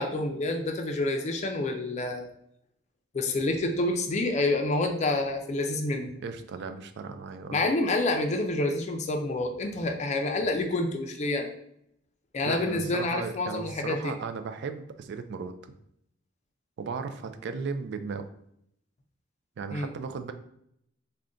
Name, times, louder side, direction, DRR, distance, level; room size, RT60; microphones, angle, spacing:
voice 1, 0.0-2.3 3.1-6.2 7.5-11.5 12.3-14.1 19.7-19.9, left 2 dB, 35° left, 3 dB, 0.4 m, -28 dB
voice 2, 6.2-7.6 12.4-15.5 16.8-18.3 19.6-20.3, right 5 dB, 60° right, 9 dB, 0.3 m, -36 dB
3.7 x 2.2 x 3.6 m, 0.74 s
head